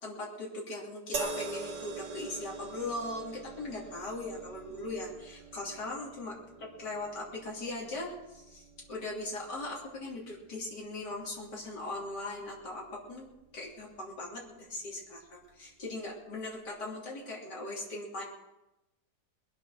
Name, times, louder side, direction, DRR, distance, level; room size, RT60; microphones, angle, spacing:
voice 1, 0.0-6.4 6.8-8.6 8.9-15.2 15.6-18.2, left 2 dB, 70° left, -4 dB, 3.9 m, -39 dB
sound 1, 1.1-14.5 15.4-15.6, right 4 dB, 75° right, 2.1 m, -45 dB
22.0 x 8.9 x 6.3 m, 0.94 s
omnidirectional pair, 1.9 m